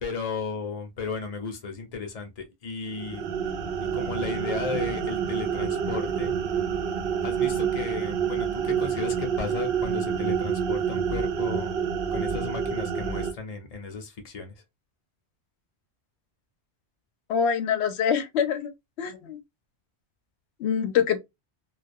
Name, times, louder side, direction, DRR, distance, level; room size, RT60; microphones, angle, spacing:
voice 1, 0.0-3.2 3.9-6.4 7.2-11.7 12.1-14.5, left 4 dB, 40° left, 0.7 m, -34 dB
sound 1, 2.9-13.3, right 7 dB, 70° right, 0.7 m, -28 dB
voice 2, 17.3-18.7 19.0-19.4 20.6-21.2, left 7 dB, 90° left, 0.8 m, -25 dB
2.3 x 2.3 x 2.6 m
omnidirectional pair, 1.1 m